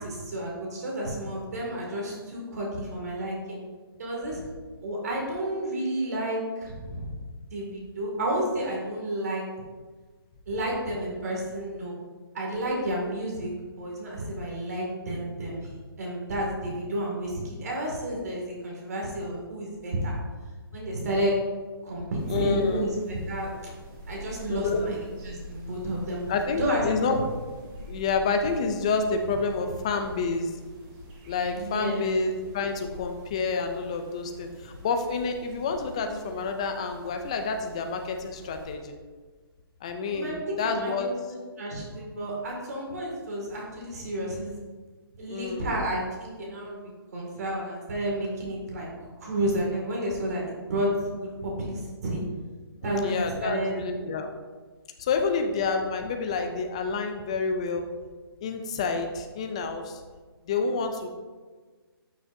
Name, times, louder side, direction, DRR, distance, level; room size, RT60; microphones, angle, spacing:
voice 1, 0.0-3.6 4.0-4.4 4.8-7.1 7.5-9.4 10.5-11.9 12.3-15.7 16.0-20.1 20.7-21.4 21.8-23.5 24.1-24.9 25.2-26.3 26.6-26.9 31.5-32.1 40.1-44.6 45.2-48.9 49.2-52.2 52.8-54.0, right 1 dB, 40° right, -2 dB, 2.2 m, -31 dB
sound 1, 22.2-38.8, equal, 15° right, 0.9 m, -46 dB
voice 2, 22.3-22.9 24.5-24.9 26.3-27.2 27.9-30.5 31.3-38.9 39.8-41.1 45.3-45.8 52.8-54.3 55.0-57.9 58.4-60.0 60.5-61.1, left 4 dB, 15° left, 5 dB, 0.4 m, -29 dB
12.0 x 6.0 x 2.6 m, 1.4 s
hypercardioid pair, 170°, 13 cm